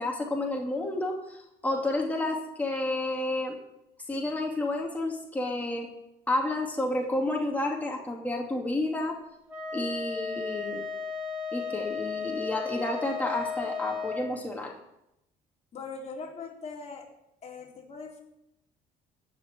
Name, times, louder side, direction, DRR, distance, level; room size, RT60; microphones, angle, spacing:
voice 1, 0.0-3.6 4.1-5.9 6.3-9.2 9.7-10.9 11.5-14.7, left 2 dB, 10° left, 0 dB, 2.5 m, -30 dB
Wind instrument woodwind instrument, 9.5-14.3, left 5 dB, 10° right, 4.6 m, -35 dB
voice 2, 15.7-17.1 17.4-18.2, left 4 dB, 40° left, -1 dB, 4.0 m, -41 dB
15.5 x 6.1 x 9.1 m, 0.83 s
cardioid pair, 110°, 17 cm